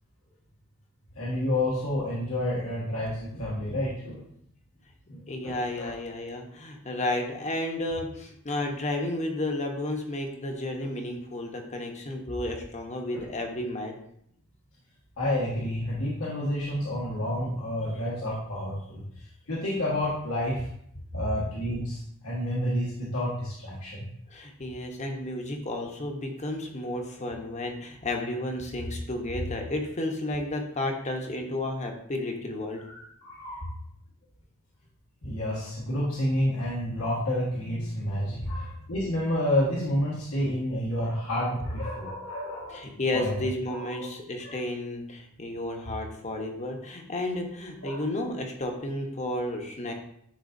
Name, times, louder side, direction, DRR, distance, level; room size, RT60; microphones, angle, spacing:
voice 1, 1.1-4.2 5.1-5.9 10.8-10.9 13.1-13.2 15.2-19.0 19.5-20.7 21.1-24.1 32.8-33.7 35.2-42.8 43.1-44.1 44.4-44.6 47.8-48.0, left 1 dB, 85° left, -7 dB, 1.6 m, -30 dB
voice 2, 5.3-14.0 24.3-32.8 38.4-38.6 42.7-49.9, left 1 dB, 35° left, 3 dB, 1.0 m, -32 dB
10.5 x 4.0 x 2.6 m, 0.70 s
head